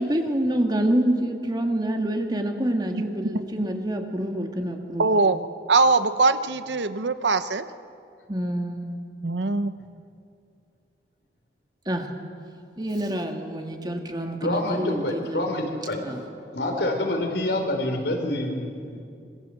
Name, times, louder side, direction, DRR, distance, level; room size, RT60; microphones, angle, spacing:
voice 1, 0.0-5.1 8.3-8.9 11.9-12.1 12.8-15.5 16.0-16.2, right 1 dB, 25° right, 4 dB, 2.1 m, -27 dB
voice 2, 5.0-5.4 5.7-7.6 9.2-9.8, right 3 dB, 85° right, 12 dB, 1.0 m, -21 dB
voice 3, 14.4-19.0, left 1 dB, 75° left, 3 dB, 4.1 m, -27 dB
26.0 x 23.5 x 7.8 m, 2.4 s
head